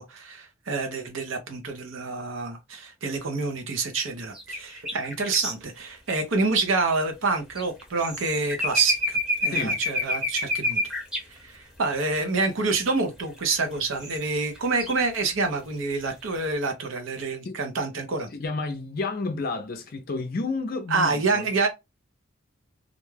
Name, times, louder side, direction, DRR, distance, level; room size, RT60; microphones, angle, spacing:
voice 1, 0.0-10.9 11.3-18.3 20.9-21.7, right 3 dB, 70° right, 0.7 m, -27 dB
sound 1, 4.3-5.5 7.5-11.2 12.4-12.5 13.5-13.6 14.0-14.9, left 1 dB, 5° right, 0.9 m, -27 dB
voice 2, 18.3-21.5, left 3 dB, 45° left, 0.4 m, -31 dB
2.5 x 2.3 x 3.1 m
head